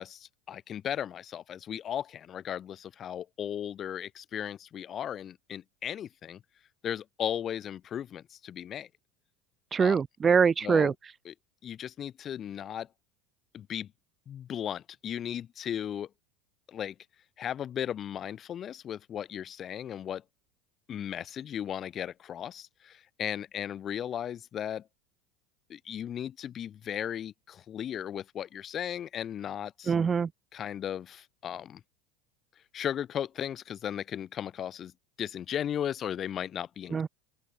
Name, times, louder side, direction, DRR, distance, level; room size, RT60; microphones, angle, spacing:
voice 1, 0.0-6.4 6.8-8.9 9.8-10.0 10.6-10.9 11.3-11.4 11.6-12.9 13.5-13.9 14.3-16.1 16.7-16.9 17.4-20.2 20.9-24.8 25.7-29.9 30.5-31.8 32.7-34.9 35.2-37.0, left 9 dB, 40° left, 5.6 m, -36 dB
voice 2, 9.7-10.9 29.9-30.3 36.9-37.1, right 6 dB, 25° right, 2.4 m, -24 dB
open air
hypercardioid pair, 75°, 0 cm